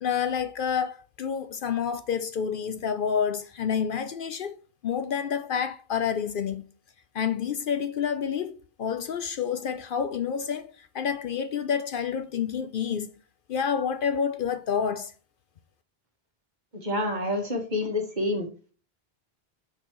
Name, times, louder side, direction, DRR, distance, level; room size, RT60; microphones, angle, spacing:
voice 1, 0.0-4.6 4.8-6.6 7.1-13.1 13.5-15.1, left 7 dB, 60° left, 0.7 m, -29 dB
voice 2, 16.8-18.5, left 1 dB, 45° right, 1.6 m, -28 dB
6.5 x 5.5 x 3.0 m
omnidirectional pair, 1.0 m